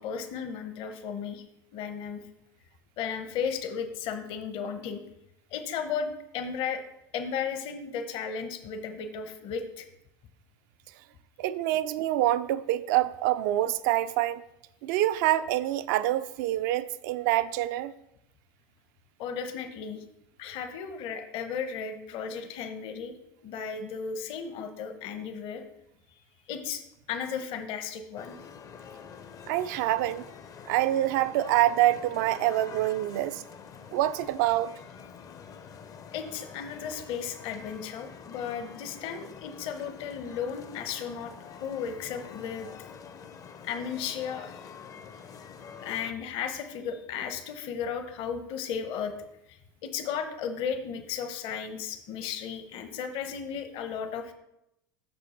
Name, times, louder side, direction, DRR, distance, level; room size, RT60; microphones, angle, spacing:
voice 1, 0.0-1.4 1.7-2.2 3.0-5.0 5.5-6.8 7.1-9.9 19.2-20.0 20.4-23.2 23.4-25.6 26.5-26.8 27.1-28.4 36.1-41.3 41.6-42.7 43.6-44.5 45.8-49.1 49.5-54.3, left 7 dB, 50° left, 0.9 m, -35 dB
voice 2, 11.4-14.4 14.8-17.9 29.5-30.2 30.7-33.4 33.9-34.7, right 14 dB, 60° right, 0.4 m, -26 dB
sound 1, 28.2-46.1, left 6 dB, 30° left, 0.6 m, -47 dB
6.2 x 5.3 x 4.3 m
hypercardioid pair, 80°, 11 cm